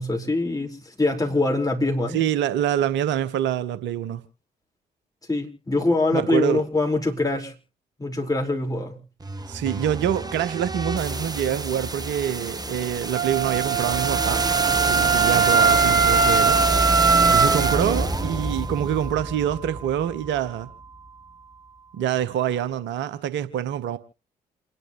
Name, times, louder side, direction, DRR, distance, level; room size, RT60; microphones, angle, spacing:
voice 1, 0.0-2.2 5.3-7.5 8.0-9.0, left 2 dB, 15° left, 4.8 m, -24 dB
voice 2, 2.1-4.2 6.1-6.6 9.5-14.4 14.9-16.6 17.3-20.7 21.9-24.0, right 10 dB, 65° right, 1.2 m, -25 dB
sound 1, 9.2-21.1, right 2 dB, 20° right, 1.2 m, -27 dB
Wind instrument woodwind instrument, 13.1-17.8, right 5 dB, 90° right, 1.0 m, -21 dB
28.5 x 11.0 x 3.1 m
figure-of-eight pair, 45°, 20 cm